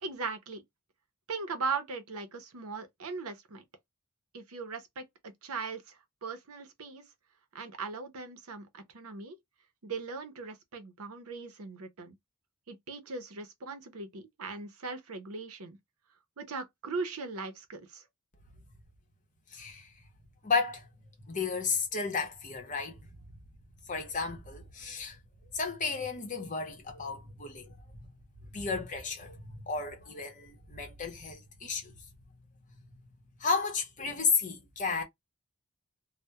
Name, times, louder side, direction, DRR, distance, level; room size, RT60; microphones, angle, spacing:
voice 1, 0.0-0.6 1.3-3.6 4.3-7.0 7.5-9.4 9.8-12.2 12.7-15.8 16.4-18.0, right 4 dB, 75° right, 0.6 m, -39 dB
voice 2, 19.5-19.9 20.4-20.9 21.2-23.1 23.9-25.2 25.5-28.0 28.5-31.9 33.4-35.0, left 4 dB, 35° left, 0.7 m, -33 dB
2.2 x 2.0 x 2.8 m
head